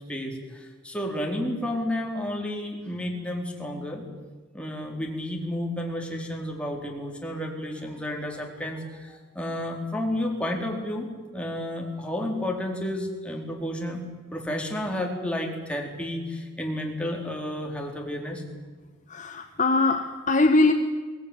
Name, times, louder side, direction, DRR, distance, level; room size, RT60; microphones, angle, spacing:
voice 1, 0.1-4.0 4.5-11.1 11.3-14.0 14.3-18.4, left 1 dB, 5° left, 1 dB, 4.0 m, -31 dB
voice 2, 19.1-20.7, left 2 dB, 40° left, 7 dB, 1.1 m, -21 dB
23.0 x 18.5 x 9.9 m, 1.4 s
head